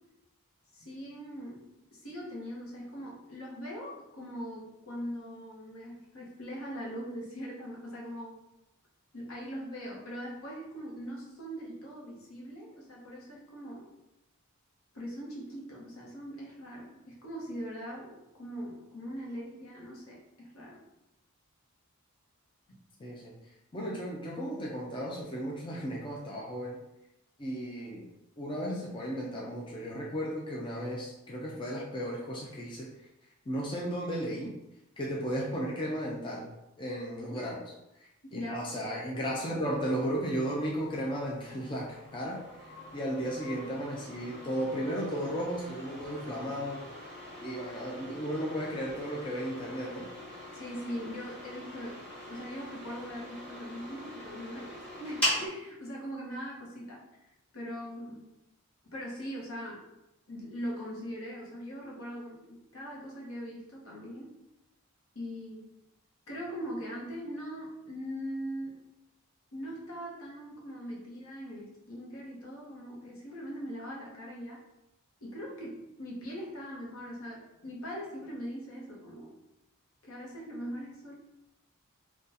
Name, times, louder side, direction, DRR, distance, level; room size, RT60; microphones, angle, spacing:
voice 1, 0.7-8.4 9.1-13.9 14.9-20.8 37.3-37.4 38.2-38.8 50.5-52.0 52.3-57.0 57.5-58.2 58.9-59.9 60.3-64.3 65.1-65.7 66.3-68.8 69.5-74.6 75.2-79.3 80.0-81.1, equal, 70° left, -3 dB, 0.9 m, -41 dB
voice 2, 23.0-23.3 23.7-26.8 27.4-28.1 28.4-32.9 33.5-34.5 35.0-36.5 36.8-37.6 38.0-46.9 47.4-50.1, equal, 25° left, -4 dB, 0.4 m, -35 dB
sound 1, 39.7-55.5, equal, 5° left, 1.4 m, -41 dB
3.9 x 2.4 x 2.6 m, 0.90 s
head